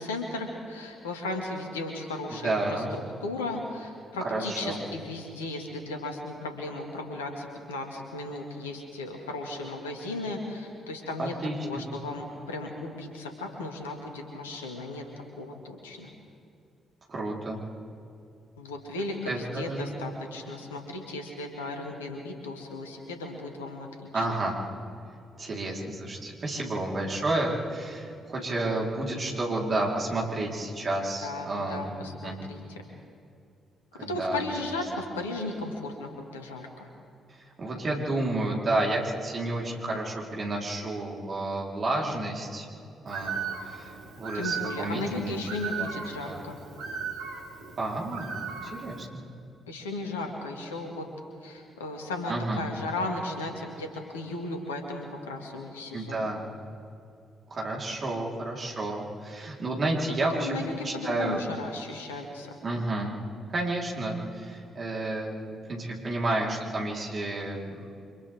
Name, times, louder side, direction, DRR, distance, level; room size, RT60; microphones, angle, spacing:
voice 1, 0.0-11.4 11.6-15.0 15.4-16.1 18.6-24.3 31.2-32.6 33.9-36.9 44.3-46.6 49.7-51.1 51.4-56.3 60.3-62.6, left 2 dB, 80° left, 2 dB, 2.1 m, -35 dB
voice 2, 2.4-2.9 4.3-4.8 11.2-11.8 17.1-17.6 19.3-19.9 24.1-24.6 25.4-31.9 32.2-32.4 33.9-34.5 37.4-42.7 43.0-43.4 43.6-45.4 45.7-45.9 46.2-46.4 47.8-48.3 48.6-49.2 52.3-52.7 55.9-56.4 57.5-60.6 60.8-61.4 62.6-63.1 63.5-67.9, right 2 dB, 40° right, -3 dB, 4.1 m, -31 dB
Bird, 43.1-49.0, right 6 dB, 65° right, 2.4 m, -37 dB
29.0 x 25.5 x 3.7 m, 2.4 s
figure-of-eight pair, 40°, 0 cm